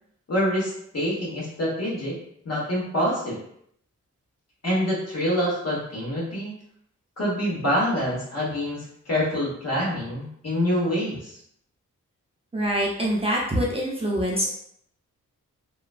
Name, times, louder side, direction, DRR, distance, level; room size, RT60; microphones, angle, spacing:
voice 1, 0.3-2.2 2.4-3.4 4.6-6.5 7.2-11.4, equal, 50° left, -5 dB, 1.4 m, -26 dB
voice 2, 12.5-14.5, equal, 20° right, -4 dB, 0.6 m, -25 dB
3.0 x 2.2 x 2.5 m, 0.70 s
cardioid pair, 60°, 32 cm